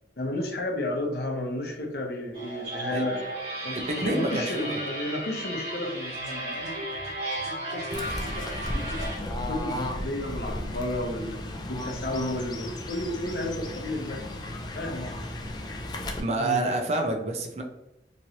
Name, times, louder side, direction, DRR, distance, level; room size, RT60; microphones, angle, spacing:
voice 1, 0.2-3.2 3.6-7.2 7.5-9.0 9.5-11.4 11.7-14.3 14.7-15.2 16.4-16.6, left 1 dB, 60° left, 1 dB, 0.7 m, -33 dB
sound 1, 2.3-9.2, right 1 dB, 70° right, 1.3 m, -34 dB
voice 2, 3.7-4.7 16.2-17.6, right 2 dB, 35° right, 3 dB, 0.5 m, -28 dB
Fowl / Bird, 7.9-16.2, left 1 dB, 25° left, 0.3 m, -34 dB
3.0 x 2.6 x 2.8 m, 0.93 s
head